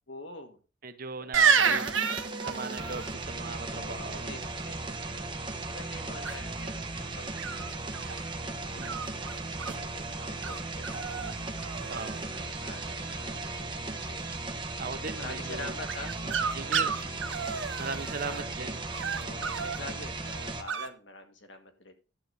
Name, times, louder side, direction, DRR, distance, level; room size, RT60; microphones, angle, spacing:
voice 1, 0.1-0.6 1.2-1.6 3.7-5.3 5.6-8.0 8.7-11.5 12.3-14.3 14.9-17.2 17.9-18.6 19.2-21.9, left 2 dB, 65° left, 1.9 m, -46 dB
voice 2, 0.8-2.0 2.5-4.3 8.8-9.1 11.9-12.2 14.8-15.8 16.2-16.9 17.8-18.8, right 4 dB, 45° right, 0.9 m, -39 dB
sound 1, 1.3-3.1 6.2-6.7 7.4-8.2 8.8-9.8 10.4-10.6 10.8-11.3 11.6-12.2 15.9-18.4 18.9-19.8 20.7-20.9, right 6 dB, 80° right, 1.0 m, -29 dB
sound 2, 1.6-20.6, right 2 dB, 25° right, 1.1 m, -37 dB
12.0 x 4.1 x 7.9 m
head